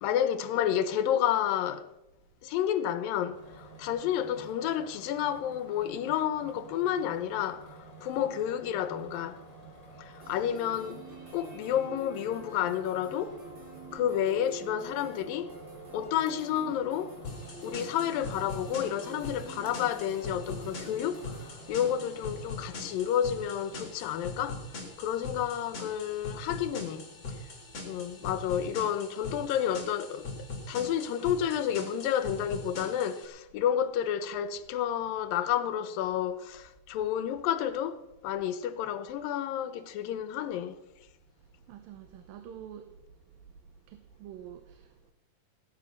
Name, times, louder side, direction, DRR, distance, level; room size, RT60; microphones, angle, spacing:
voice 1, 0.0-1.9 2.4-9.4 10.0-11.1 11.3-13.4 13.9-15.5 15.9-17.2 17.6-24.6 25.0-27.4 27.8-40.8, left 10 dB, 85° left, 2.7 m, -30 dB
sound 1, 3.3-22.5, right 2 dB, 10° left, 3.4 m, -50 dB
sound 2, 10.2-21.5, right 2 dB, 35° right, 4.3 m, -48 dB
sound 3, 17.2-33.2, left 2 dB, 45° left, 4.9 m, -42 dB
voice 2, 41.7-43.0 43.9-45.1, right 9 dB, 90° right, 2.8 m, -47 dB
18.0 x 10.0 x 6.5 m
omnidirectional pair, 4.0 m